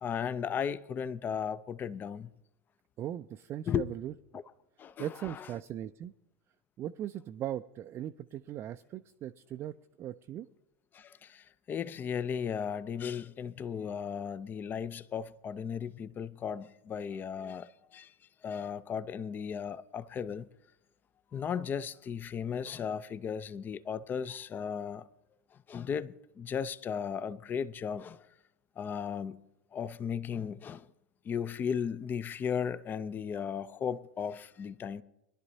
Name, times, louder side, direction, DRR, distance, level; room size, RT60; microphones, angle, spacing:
voice 1, 0.0-2.3 3.7-3.8 4.3-4.4 4.8-5.5 10.9-18.1 18.4-20.5 21.3-25.0 25.5-28.3 28.8-29.4 29.7-30.9 31.2-35.0, left 7 dB, 25° left, 0.6 m, -36 dB
voice 2, 3.0-4.1 5.0-6.1 6.8-10.5, right 11 dB, 35° right, 0.4 m, -39 dB
22.0 x 11.5 x 2.8 m
figure-of-eight pair, 80°, 7 cm